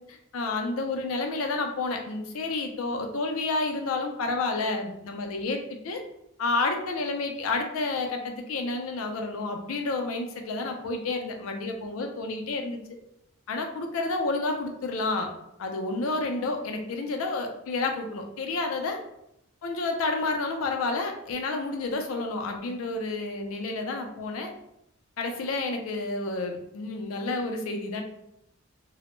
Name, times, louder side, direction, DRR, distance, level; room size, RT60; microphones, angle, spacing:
voice 1, 0.1-6.0 6.4-12.8 13.5-15.3 15.6-19.0 19.6-24.5 25.2-28.0, left 3 dB, 90° left, 4 dB, 0.4 m, -30 dB
2.1 x 2.0 x 3.0 m, 0.80 s
head